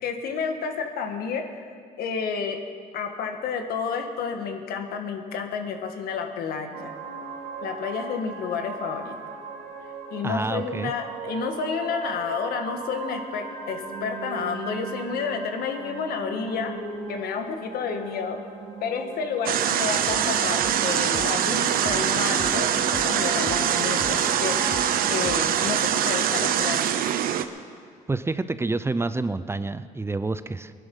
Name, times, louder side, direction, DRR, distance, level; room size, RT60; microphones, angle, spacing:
voice 1, 0.0-1.7 2.0-2.6 2.9-6.9 7.6-9.2 10.1-16.7 17.1-18.4 18.8-27.0, left 6 dB, 80° left, 5 dB, 1.6 m, -30 dB
sound 1, 6.7-26.5, right 4 dB, 85° right, 2.8 m, -37 dB
voice 2, 10.2-10.9 28.1-30.7, right 3 dB, 15° right, 13 dB, 0.5 m, -28 dB
sound 2, 19.5-27.5, right 9 dB, 70° right, 0.8 m, -24 dB
sound 3, 20.1-20.3 20.6-23.1 23.5-25.6, left 5 dB, 35° left, 0.8 m, -42 dB
20.0 x 11.0 x 5.5 m, 2.1 s
cardioid pair, 95°, 16 cm